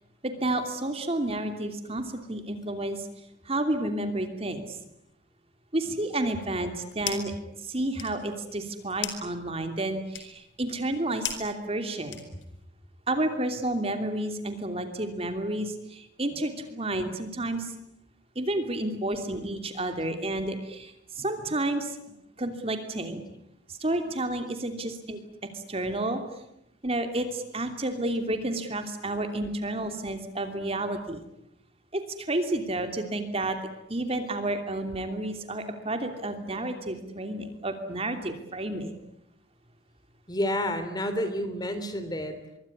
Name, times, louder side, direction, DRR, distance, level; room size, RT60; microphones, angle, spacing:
voice 1, 0.2-3.0 3.5-4.8 5.7-7.3 7.6-12.2 13.1-17.7 18.3-22.0 22.4-23.2 23.7-26.2 26.8-31.2 31.9-33.6 33.9-38.9, right 1 dB, 30° right, 7 dB, 2.9 m, -31 dB
sound 1, 6.6-7.4 7.7-12.6, left 9 dB, 90° left, 4.7 m, -39 dB
voice 2, 40.3-42.4, left 1 dB, 20° left, 10 dB, 3.5 m, -29 dB
25.0 x 23.5 x 9.7 m, 0.80 s
head